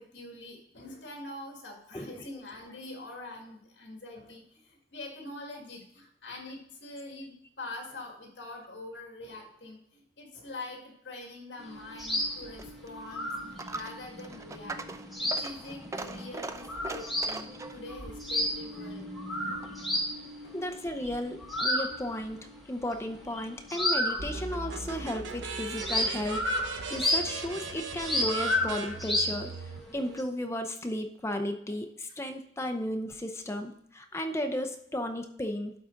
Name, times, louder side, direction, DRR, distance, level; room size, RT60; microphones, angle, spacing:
voice 1, 0.0-14.8 15.2-19.1 20.4-20.6 32.1-32.2, left 2 dB, 70° left, 1 dB, 1.9 m, -44 dB
sound 1, 11.6-24.8 25.0-30.2, left 1 dB, ahead, 1.2 m, -33 dB
Coin (dropping), 12.4-19.9, right 3 dB, 15° right, 0.3 m, -42 dB
voice 2, 20.5-29.5 29.9-35.7, left 1 dB, 15° left, 6 dB, 0.6 m, -34 dB
sound 2, 24.2-29.8, right 4 dB, 85° right, 0.7 m, -38 dB
11.5 x 4.0 x 3.8 m, 0.67 s
head